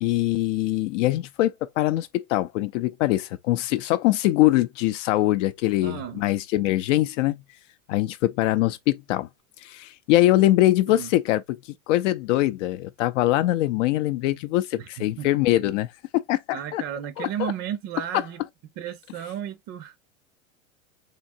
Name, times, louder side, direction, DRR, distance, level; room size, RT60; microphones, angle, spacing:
voice 1, 0.0-7.4 7.9-9.3 9.6-11.6 11.9-16.8 17.2-17.5, left 15 dB, 65° left, 0.5 m, -23 dB
voice 2, 5.8-6.3 10.9-11.1 14.8-15.3 16.5-18.4 18.8-20.0, right 10 dB, 35° right, 0.5 m, -34 dB
3.7 x 2.8 x 2.5 m
supercardioid pair, 120°, 40 cm